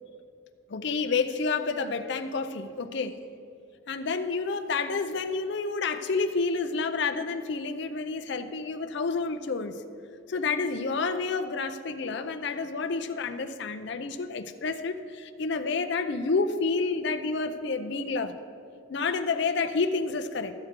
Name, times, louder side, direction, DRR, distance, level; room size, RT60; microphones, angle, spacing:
voice 1, 0.7-3.2 3.9-9.8 10.3-18.4 18.9-20.5, left 4 dB, 55° left, 7 dB, 0.5 m, -29 dB
13.5 x 7.8 x 3.7 m, 2.4 s
head